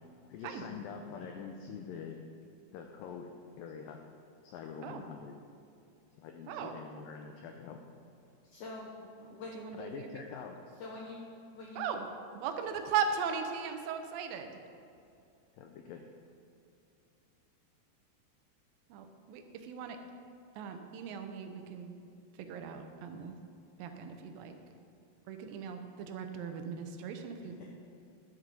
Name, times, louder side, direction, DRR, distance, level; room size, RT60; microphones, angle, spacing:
voice 1, 0.3-2.2 2.7-4.0 4.4-5.4 6.2-7.8 9.7-10.6 15.5-16.0, left 6 dB, 90° left, 4 dB, 1.9 m, -45 dB
voice 2, 6.5-6.8 9.2-10.2 11.8-12.1 12.3-14.6 18.9-20.0 20.6-22.0 22.4-23.4 23.8-24.5 25.3-27.6, right 7 dB, 75° right, 6 dB, 2.2 m, -38 dB
voice 3, 8.5-9.6 10.8-11.2 11.5-11.8 27.4-27.6, left 3 dB, 75° left, -2 dB, 1.8 m, -45 dB
11.0 x 7.9 x 5.3 m, 2.6 s
omnidirectional pair, 4.8 m